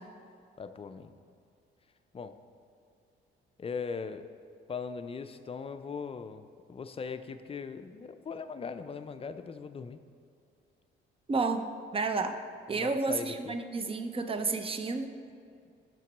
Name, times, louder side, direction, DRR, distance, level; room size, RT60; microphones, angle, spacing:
voice 1, 0.6-1.1 2.1-2.4 3.6-4.3 4.7-6.4 6.7-10.0 12.7-13.6, left 5 dB, 30° left, 10 dB, 0.4 m, -39 dB
voice 2, 11.3-11.7 11.9-12.4 12.7-15.1, right 3 dB, 30° right, 7 dB, 0.6 m, -31 dB
5.7 x 5.3 x 6.0 m, 2.3 s
cardioid pair, 90°, 20 cm